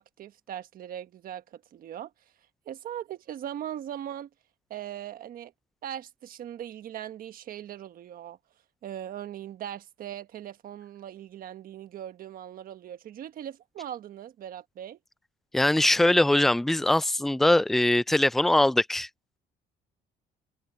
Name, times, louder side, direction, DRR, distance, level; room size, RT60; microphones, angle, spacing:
voice 1, 0.0-2.1 2.7-4.3 4.7-5.5 5.8-8.4 8.8-15.0, right 10 dB, 60° right, 1.3 m, -39 dB
voice 2, 15.5-19.1, left 1 dB, ahead, 0.4 m, -22 dB
cardioid pair, 110°, 17 cm